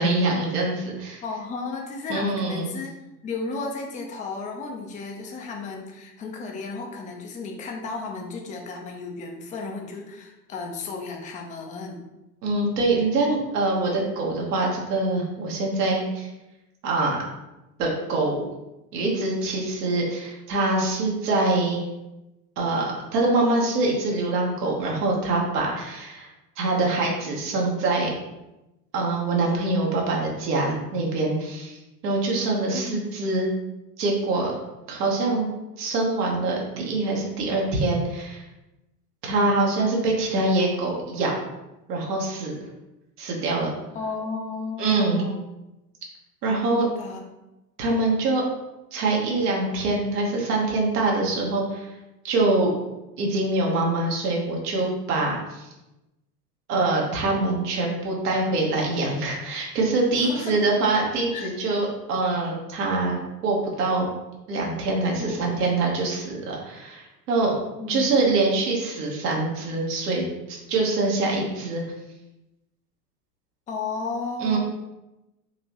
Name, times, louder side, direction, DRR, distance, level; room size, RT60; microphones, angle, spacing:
voice 1, 0.0-1.2 2.1-2.7 12.4-16.3 16.8-17.2 17.8-18.5 18.9-21.9 22.6-26.3 26.6-28.1 28.9-33.5 34.0-34.5 34.9-35.5 35.8-38.4 39.2-41.3 41.9-42.5 43.2-43.7 44.8-45.2 46.4-46.9 47.8-48.4 48.9-51.9 52.2-52.7 53.2-55.7 56.7-63.2 63.4-64.1 64.5-67.5 67.9-71.8 74.4-74.6, right 2 dB, 65° right, -2 dB, 1.3 m, -24 dB
voice 2, 1.2-12.0 32.7-33.2 43.9-45.4 46.7-47.2 60.1-60.6 61.3-61.5 65.2-65.6 67.8-68.1 73.7-74.6, left 4 dB, 15° left, 2 dB, 0.5 m, -33 dB
4.5 x 2.9 x 2.9 m, 0.98 s
hypercardioid pair, 85°, 49 cm